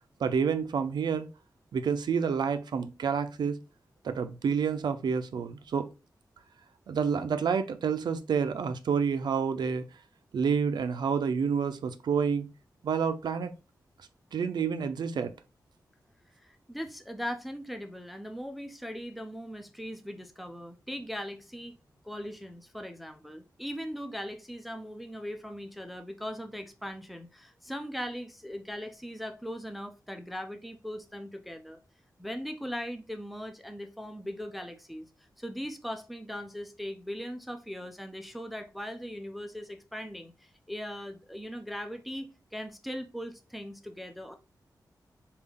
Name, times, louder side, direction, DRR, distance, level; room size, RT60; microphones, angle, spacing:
voice 1, 0.2-1.3 1.7-3.6 4.0-5.9 6.9-9.8 10.3-12.5 12.8-13.5 14.3-15.3, right 6 dB, 80° right, 0.4 m, -28 dB
voice 2, 16.4-21.8 22.0-31.8 32.2-35.1 35.4-44.3, equal, ahead, 0.4 m, -39 dB
3.5 x 2.3 x 3.3 m
wide cardioid pair, 120°, 7 cm